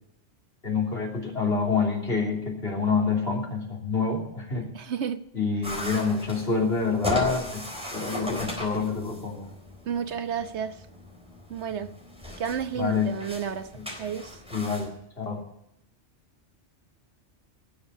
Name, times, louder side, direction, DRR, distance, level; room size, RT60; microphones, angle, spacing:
voice 1, 0.6-4.7 5.3-7.6 7.9-9.5 11.7-11.9 12.8-13.1 13.7-13.8 14.5-15.4, left 5 dB, 60° left, -1 dB, 3.5 m, -27 dB
voice 2, 4.7-5.2 9.9-10.7 11.5-11.9 12.4-13.7 14.0-14.3, right 7 dB, 70° right, 10 dB, 1.2 m, -31 dB
sound 1, 5.6-14.9, left 1 dB, 5° right, 3.9 m, -37 dB
19.0 x 7.3 x 6.9 m, 0.79 s
omnidirectional pair, 1.2 m